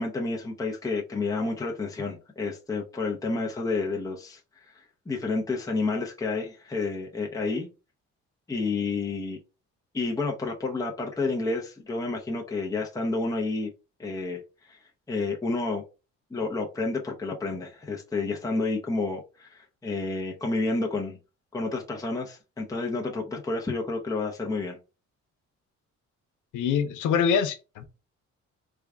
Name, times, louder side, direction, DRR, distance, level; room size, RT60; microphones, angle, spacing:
voice 1, 0.0-4.4 5.1-7.7 8.5-9.4 9.9-13.7 14.0-14.4 14.7-14.8 15.1-15.8 16.3-21.2 21.5-24.8, left 3 dB, 10° left, 0.7 m, -30 dB
voice 2, 26.5-28.0, left 7 dB, 85° left, 0.7 m, -25 dB
3.5 x 2.3 x 3.5 m
cardioid pair, 90°, 30 cm